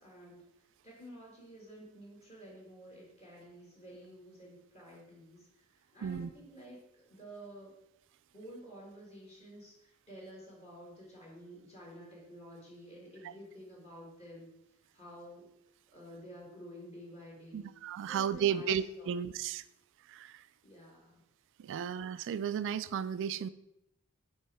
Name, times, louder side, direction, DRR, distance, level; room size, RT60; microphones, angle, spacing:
voice 1, 0.0-7.7 8.3-14.5 14.9-15.5 15.9-17.7 18.1-19.1 20.6-21.2 21.7-21.9, equal, 30° left, -4 dB, 1.9 m, -51 dB
voice 2, 17.5-19.6 20.1-20.4 21.6-23.5, right 8 dB, 60° right, 15 dB, 0.3 m, -34 dB
9.2 x 3.2 x 4.2 m, 0.85 s
head